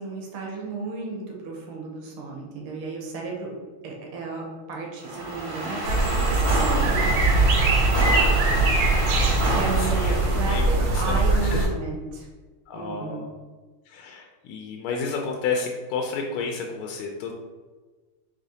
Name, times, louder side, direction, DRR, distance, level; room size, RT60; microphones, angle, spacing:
voice 1, 0.0-3.5 3.8-7.2 9.5-12.3 12.7-13.2, right 3 dB, 90° right, 0 dB, 1.8 m, -33 dB
sound 1, 5.0-10.7, right 1 dB, 30° right, 0.5 m, -29 dB
sound 2, 5.8-11.7, right 2 dB, 70° right, 1.3 m, -21 dB
voice 2, 8.2-10.2 10.5-11.7 12.7-13.3 13.9-17.3, left 4 dB, 85° left, 1 dB, 1.4 m, -32 dB
4.1 x 3.2 x 3.9 m, 1.3 s
omnidirectional pair, 2.3 m